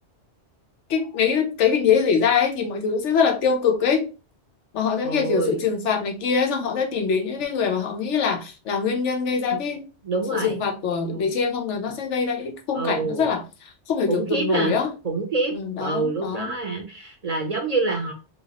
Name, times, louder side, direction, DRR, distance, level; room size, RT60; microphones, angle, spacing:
voice 1, 0.9-4.1 4.7-9.9 10.3-13.4 13.9-14.9 15.5-16.4, left 6 dB, 85° left, 1.0 m, -23 dB
voice 2, 5.0-5.6 9.5-9.6 10.0-10.6 11.1-11.3 12.7-13.3 14.1-14.7 15.0-18.1, right 3 dB, 40° right, 0.7 m, -26 dB
3.1 x 2.8 x 2.9 m
omnidirectional pair, 1.2 m